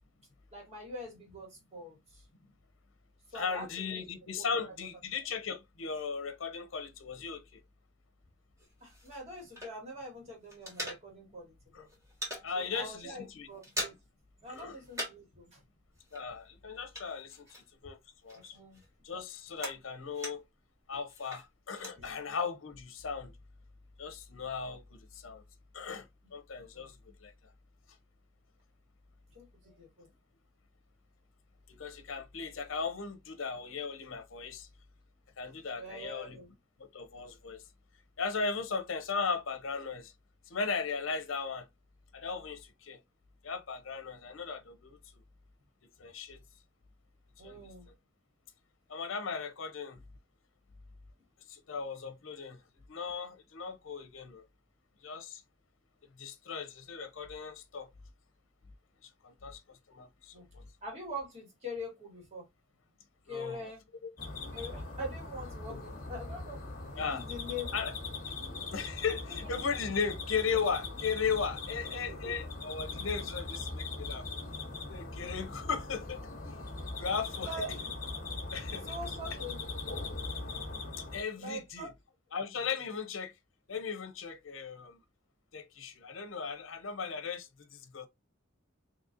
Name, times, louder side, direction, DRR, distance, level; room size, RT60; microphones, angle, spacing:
voice 1, 0.5-2.3 3.3-4.7 8.8-11.9 12.6-14.0 14.4-15.6 18.5-18.8 22.0-22.1 26.2-26.3 26.7-26.9 29.3-30.1 35.8-36.5 47.4-47.9 60.3-60.5 60.8-62.5 63.3-63.8 64.5-66.6 66.9-67.7 68.2-68.5 69.3-69.6 72.1-72.2 77.4-77.7 78.8-79.6 81.4-81.9, left 1 dB, 35° right, 2.1 m, -44 dB
voice 2, 3.3-7.6 11.7-11.9 12.4-13.5 14.5-14.8 16.1-18.0 18.2-18.6 19.0-20.4 20.9-23.3 24.0-25.4 25.7-27.3 31.7-34.7 35.4-36.4 36.8-37.6 38.2-40.1 40.5-41.7 42.1-43.0 43.4-45.0 46.0-46.4 47.4-47.9 48.9-50.0 51.5-52.6 52.9-54.4 55.0-55.4 56.2-57.9 59.0-60.6 63.3-63.7 65.7-65.8 67.0-67.2 67.7-67.9 68.7-74.3 74.9-76.3 77.0-77.5 78.5-78.9 81.1-81.9 82.3-83.3 83.7-85.0 85.5-88.1, left 5 dB, 80° left, 0.7 m, -37 dB
sound 1, 8.6-10.1 10.3-11.5 11.7-12.5 12.9-13.1 13.3-14.2 14.5-15.4 15.6-17.9 18.3-20.6 21.1-22.0, equal, 15° right, 1.4 m, -42 dB
sound 2, 64.2-81.2, left 3 dB, 45° left, 1.1 m, -40 dB
4.0 x 3.1 x 2.6 m
head